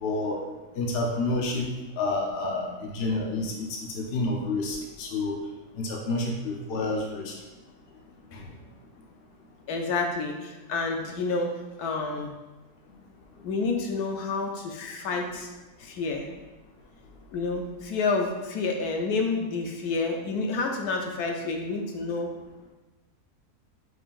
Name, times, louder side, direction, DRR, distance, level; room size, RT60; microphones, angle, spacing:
voice 1, 0.0-0.4 0.8-1.7 2.0-3.5 3.9-5.3 5.8-7.3, left 2 dB, 50° left, -1 dB, 0.9 m, -29 dB
voice 2, 9.7-12.3 13.4-15.5 15.8-16.3 17.3-22.3, left 3 dB, 80° left, 2 dB, 1.1 m, -29 dB
5.9 x 3.6 x 2.5 m, 1.1 s
omnidirectional pair, 1.6 m